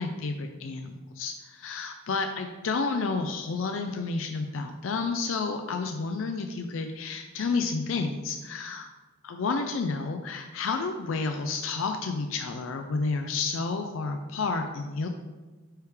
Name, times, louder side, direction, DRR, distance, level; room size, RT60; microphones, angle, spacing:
voice 1, 0.0-8.9 9.2-15.1, left 4 dB, 75° left, 5 dB, 0.4 m, -30 dB
8.9 x 3.5 x 3.3 m, 1.2 s
head